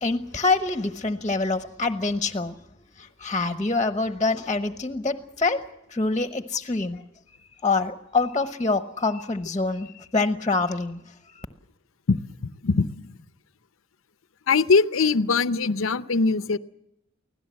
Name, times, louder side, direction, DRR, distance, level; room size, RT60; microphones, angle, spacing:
voice 1, 0.0-2.5 3.0-5.6 5.9-7.0 7.6-11.0 11.4-11.5, left 3 dB, 20° left, 8 dB, 1.0 m, -25 dB
voice 2, 12.4-13.1 14.5-16.6, left 4 dB, 85° left, 13 dB, 0.7 m, -22 dB
24.5 x 17.0 x 7.6 m, 0.84 s
head